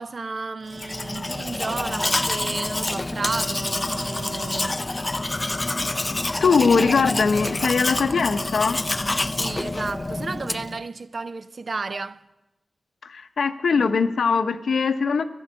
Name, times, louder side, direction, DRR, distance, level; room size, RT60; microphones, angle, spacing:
voice 1, 0.0-4.9 9.3-12.2, right 4 dB, 55° right, 0.5 m, -32 dB
Domestic sounds home sounds, 0.7-10.8, left 2 dB, 25° left, 0.4 m, -27 dB
voice 2, 6.4-8.8 13.0-15.2, left 5 dB, 90° left, 0.8 m, -21 dB
18.0 x 12.5 x 5.3 m
wide cardioid pair, 70°, 0 cm